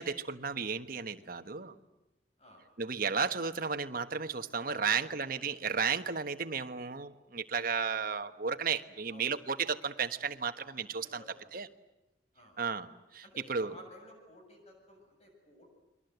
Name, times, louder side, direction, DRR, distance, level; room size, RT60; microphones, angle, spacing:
voice 1, 0.0-1.8 2.8-11.2 11.5-11.7 12.6-13.2 13.5-13.7, right 5 dB, 55° right, 9 dB, 1.3 m, -33 dB
voice 2, 4.6-5.5 9.1-9.3 10.9-11.5 12.3-12.5 13.2-15.8, equal, 35° left, 2 dB, 7.4 m, -54 dB
29.5 x 22.5 x 8.1 m, 0.94 s
head